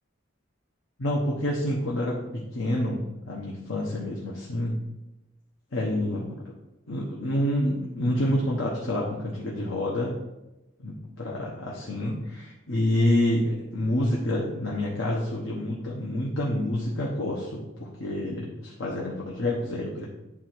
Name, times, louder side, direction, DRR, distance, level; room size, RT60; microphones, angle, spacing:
voice 1, 1.0-3.0 3.3-4.8 5.7-6.3 6.9-10.2 10.8-20.0, left 1 dB, 90° left, -3 dB, 1.2 m, -28 dB
9.7 x 3.8 x 4.5 m, 0.99 s
head